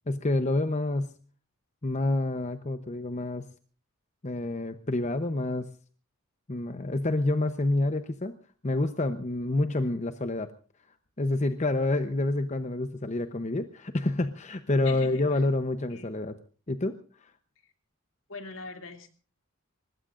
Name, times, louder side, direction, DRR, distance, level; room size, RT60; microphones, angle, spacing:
voice 1, 0.1-1.1 1.8-3.4 4.2-5.7 6.5-8.3 8.6-10.5 11.2-16.4 16.7-17.3, left 2 dB, 35° left, 9 dB, 0.9 m, -28 dB
voice 2, 14.8-15.4 15.9-16.1 18.3-19.1, left 3 dB, 70° left, 6 dB, 2.7 m, -42 dB
25.0 x 20.5 x 2.5 m, 0.39 s
head